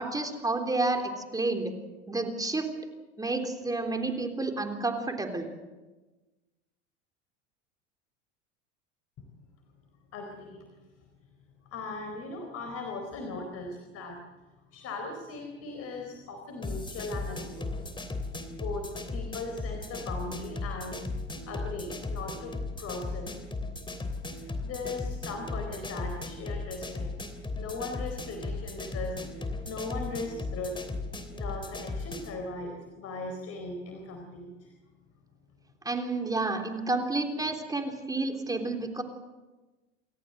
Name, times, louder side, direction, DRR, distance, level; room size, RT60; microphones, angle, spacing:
voice 1, 0.0-1.8 2.1-2.7 3.2-5.5 35.8-39.0, right 2 dB, 10° right, 4 dB, 3.4 m, -30 dB
voice 2, 10.1-10.6 11.7-14.2 14.7-17.9 18.6-21.0 21.5-23.3 24.4-27.1 27.6-30.8 31.3-34.7, left 3 dB, 45° left, 4 dB, 4.2 m, -38 dB
sound 1, 16.6-32.4, left 3 dB, 15° left, 3.2 m, -36 dB
28.5 x 14.5 x 7.9 m, 1.2 s
hypercardioid pair, 100°, 35 cm